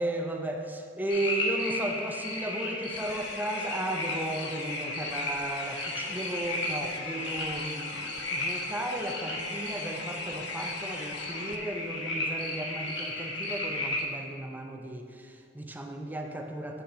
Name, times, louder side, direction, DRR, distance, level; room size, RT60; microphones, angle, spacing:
voice 1, 0.0-16.8, right 1 dB, 10° right, 3 dB, 0.5 m, -35 dB
sound 1, 1.1-14.0, left 1 dB, 80° left, 1.2 m, -34 dB
sound 2, 2.9-11.6, left 5 dB, 60° left, 0.5 m, -43 dB
6.3 x 5.6 x 5.6 m, 2.3 s
head